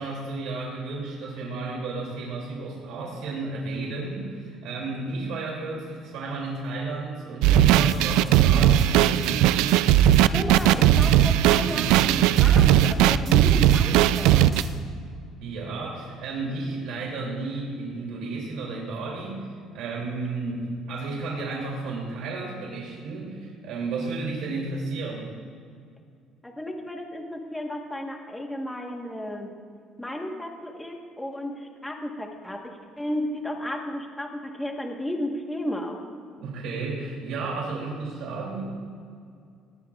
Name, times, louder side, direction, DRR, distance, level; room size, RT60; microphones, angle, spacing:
voice 1, 0.0-9.5 15.4-25.4 36.4-38.6, right 3 dB, 75° right, -3 dB, 2.7 m, -32 dB
sound 1, 7.4-14.6, right 12 dB, 90° right, 0.3 m, -18 dB
sound 2, 7.9-14.7, right 2 dB, 40° right, 1.4 m, -35 dB
voice 2, 10.3-14.5 26.4-29.5 30.0-36.0, left 1 dB, 5° left, 1 dB, 1.3 m, -33 dB
18.5 x 15.0 x 2.4 m, 2.3 s
cardioid pair, 160°, 0 cm